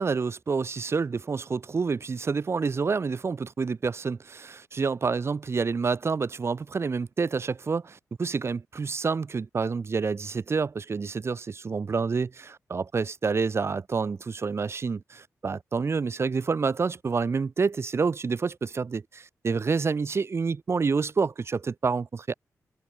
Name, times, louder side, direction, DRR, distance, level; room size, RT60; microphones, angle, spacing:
voice 1, 0.0-22.3, right 5 dB, 45° right, 4.8 m, -28 dB
wide cardioid pair, 95°, 6 cm